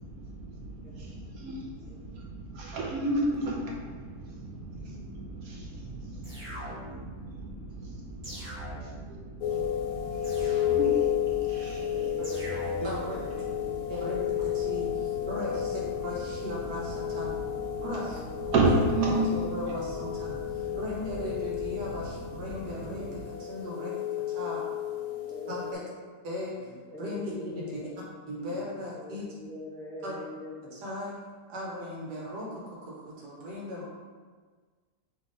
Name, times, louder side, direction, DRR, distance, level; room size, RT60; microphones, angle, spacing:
voice 1, 0.0-13.1 13.4-23.3, right 2 dB, 70° right, -2 dB, 1.0 m, -35 dB
sound 1, 6.2-7.1 8.2-9.1 10.2-11.1 12.2-13.1, left 1 dB, 35° right, 1.2 m, -41 dB
sound 2, 9.4-25.7, left 10 dB, 75° left, 1.1 m, -32 dB
voice 2, 11.7-14.1 15.2-15.6 17.0-18.3 24.4-25.9 26.6-30.7, left 1 dB, 35° left, -8 dB, 1.0 m, -45 dB
voice 3, 12.8-13.2 13.9-17.3 17.8-18.2 18.6-18.7 19.1-24.6 25.5-25.8 26.2-26.7 27.0-27.9 28.3-29.3 30.0-30.2 30.7-31.2 31.5-33.9, left 1 dB, 90° right, -4 dB, 1.6 m, -37 dB
3.5 x 3.4 x 3.9 m, 1.5 s
omnidirectional pair, 1.7 m